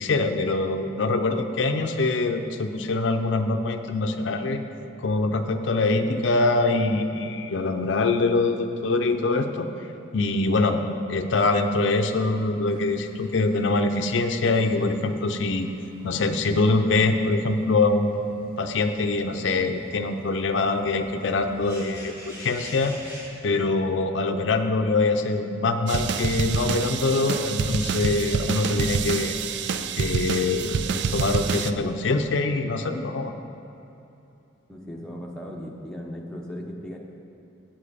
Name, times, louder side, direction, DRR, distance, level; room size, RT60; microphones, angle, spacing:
voice 1, 0.0-4.6 5.0-9.7 10.1-10.8 11.1-15.7 16.0-22.9 23.4-29.4 30.0-33.3, left 3 dB, 70° left, 6 dB, 0.5 m, -24 dB
sound 1, 12.7-23.3, equal, 15° right, 2.4 m, -48 dB
sound 2, 25.9-31.7, right 5 dB, 60° right, 0.3 m, -27 dB
voice 2, 34.7-37.0, equal, 5° left, -2 dB, 0.8 m, -37 dB
8.7 x 7.5 x 5.0 m, 2.9 s
head